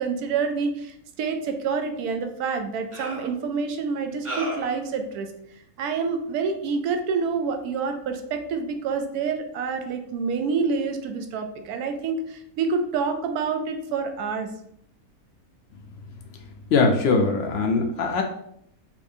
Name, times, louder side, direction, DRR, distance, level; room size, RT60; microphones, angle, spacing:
voice 1, 0.0-5.3 5.8-14.5, right 5 dB, 85° right, 6 dB, 1.1 m, -27 dB
sound 1, 2.0-2.1 2.9-3.3 4.3-4.8, right 2 dB, 35° right, 0.5 m, -33 dB
voice 2, 16.7-18.2, left 4 dB, 60° left, 3 dB, 0.6 m, -21 dB
4.2 x 2.5 x 2.6 m, 0.72 s
omnidirectional pair, 1.6 m